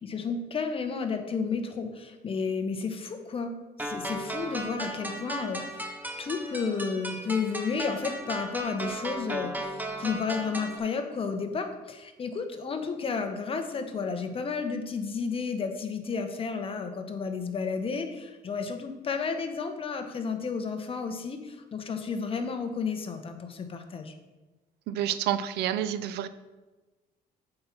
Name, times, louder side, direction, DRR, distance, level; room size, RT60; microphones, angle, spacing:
voice 1, 0.0-3.5 3.8-5.8 6.2-24.1, left 5 dB, 35° left, 6 dB, 1.0 m, -32 dB
sound 1, 3.8-10.8, right 1 dB, 10° right, 1.0 m, -36 dB
voice 2, 24.9-26.3, right 11 dB, 75° right, 13 dB, 0.5 m, -29 dB
7.5 x 4.5 x 5.9 m, 1.2 s
cardioid pair, 110°, 17 cm